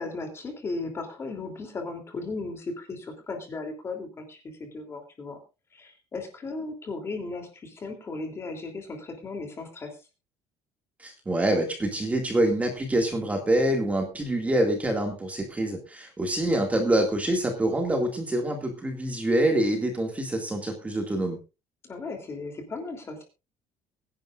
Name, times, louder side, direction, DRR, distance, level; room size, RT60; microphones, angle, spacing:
voice 1, 0.0-5.4 5.7-10.0 16.5-16.7 21.8-23.2, left 3 dB, 25° left, 5 dB, 3.1 m, -36 dB
voice 2, 11.0-21.4, right 1 dB, 10° right, 3 dB, 2.2 m, -26 dB
23.0 x 11.0 x 2.5 m, 0.29 s
cardioid pair, 170°, 11 cm